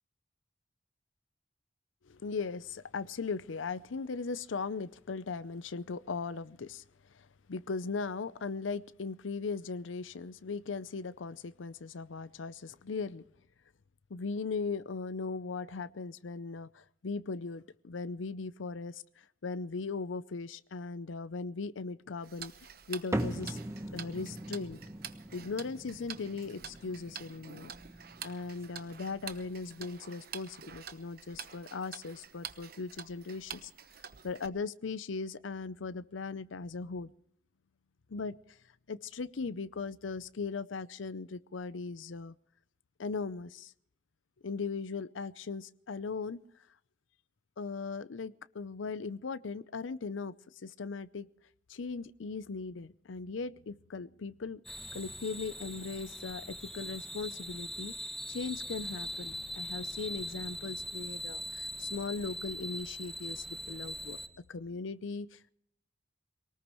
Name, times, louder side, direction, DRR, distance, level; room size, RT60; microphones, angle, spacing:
voice 1, 2.1-6.8 7.1-13.2 14.1-22.5 22.9-23.6 23.9-24.8 25.3-27.7 28.2-33.7 34.2-37.1 38.1-38.4 38.9-42.3 43.0-43.7 44.4-46.4 47.6-50.3 50.6-51.3 51.7-64.2 64.5-65.5, left 4 dB, 90° left, 0.6 m, -38 dB
Tick-tock, 22.2-34.5, right 8 dB, 50° right, 1.0 m, -48 dB
sound 1, 23.1-29.8, right 1 dB, 15° right, 1.0 m, -41 dB
sound 2, 54.6-64.3, left 1 dB, ahead, 1.5 m, -41 dB
22.5 x 19.0 x 3.1 m
head